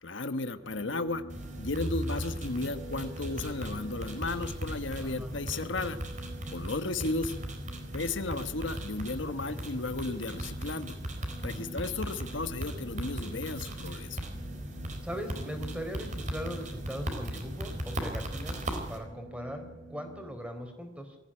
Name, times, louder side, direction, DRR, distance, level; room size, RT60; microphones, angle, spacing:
voice 1, 0.0-1.2 1.6-6.0 6.5-7.3 7.9-11.0 11.4-14.2, left 3 dB, 70° left, 10 dB, 1.3 m, -34 dB
sound 1, 0.6-20.2, right 1 dB, 90° right, 7.3 m, -49 dB
sound 2, 1.3-19.0, right 1 dB, 40° right, 4.0 m, -38 dB
voice 2, 5.0-5.3 9.5-9.6 11.4-11.7 15.0-18.6 18.9-21.2, equal, 5° right, 5 dB, 4.0 m, -40 dB
23.0 x 15.0 x 9.9 m, 1.0 s
head